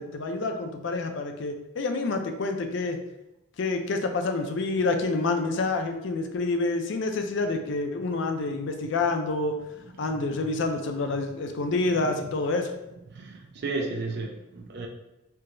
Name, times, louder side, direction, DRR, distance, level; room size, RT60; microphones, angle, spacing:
voice 1, 0.0-3.0 3.6-9.6 10.0-12.7, left 3 dB, 60° left, 5 dB, 0.4 m, -28 dB
voice 2, 13.1-14.9, right 3 dB, 50° right, 1 dB, 0.4 m, -33 dB
4.5 x 2.0 x 2.5 m, 0.95 s
head